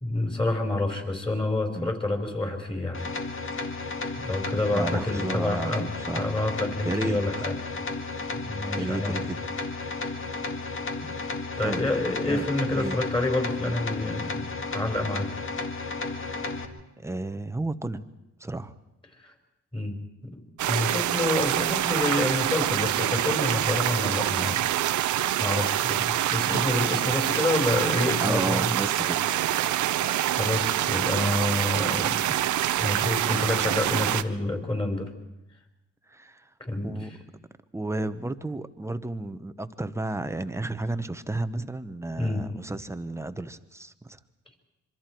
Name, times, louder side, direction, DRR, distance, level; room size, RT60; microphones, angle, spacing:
voice 1, 0.0-3.1 4.2-5.9 6.1-7.5 8.3-9.2 11.6-15.3 19.7-20.0 20.2-24.7 25.4-28.7 29.0-29.1 30.4-32.4 32.8-35.1 36.7-37.1 42.2-42.4, left 2 dB, 15° left, 3 dB, 4.3 m, -28 dB
sound 1, 2.9-16.7, left 3 dB, 40° left, 1.9 m, -33 dB
voice 2, 4.7-6.3 6.8-7.2 8.8-10.2 11.0-11.1 11.6-11.8 12.2-13.0 17.0-18.1 18.4-18.7 28.2-29.3 36.1-36.5 36.8-37.1 37.7-44.2, right 2 dB, 10° right, 11 dB, 1.0 m, -33 dB
sound 2, 20.6-34.2, right 13 dB, 75° right, 0.8 m, -26 dB
26.0 x 23.5 x 4.6 m, 0.92 s
cardioid pair, 90°, 30 cm